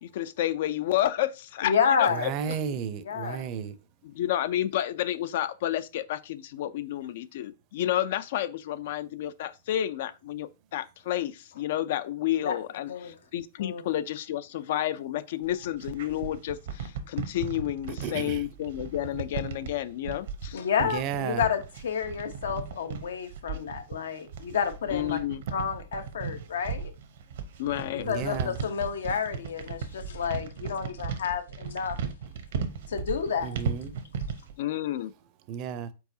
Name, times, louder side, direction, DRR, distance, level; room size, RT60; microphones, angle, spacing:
voice 1, 0.0-2.3 2.7-2.8 4.0-20.6 24.9-25.4 27.6-28.1 34.6-35.1, left 12 dB, 65° left, 0.3 m, -30 dB
voice 2, 1.6-2.3 3.0-3.5 12.4-12.6 12.9-13.1 13.6-13.8 20.5-25.2 25.5-26.9 28.1-32.0 32.9-33.6, left 7 dB, 85° left, 0.8 m, -30 dB
voice 3, 2.2-3.7 18.0-18.4 20.9-21.4 28.0-28.5 33.4-33.9 35.5-35.9, right 8 dB, 40° right, 0.5 m, -33 dB
sound 1, 15.4-34.5, right 6 dB, 70° right, 0.8 m, -36 dB
4.6 x 4.0 x 2.7 m
hypercardioid pair, 140°, 0 cm